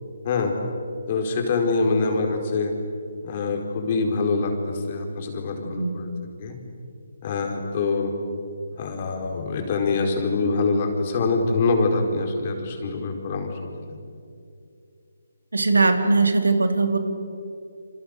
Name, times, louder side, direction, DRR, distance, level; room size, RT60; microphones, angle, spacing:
voice 1, 0.2-0.5 1.1-2.7 3.2-6.1 6.4-6.6 7.2-8.1 8.8-14.0, left 3 dB, 35° left, 3 dB, 4.6 m, -25 dB
voice 2, 15.5-17.0, right 3 dB, 85° right, 6 dB, 3.6 m, -20 dB
28.5 x 27.5 x 6.8 m, 2.5 s
figure-of-eight pair, 155°, 0 cm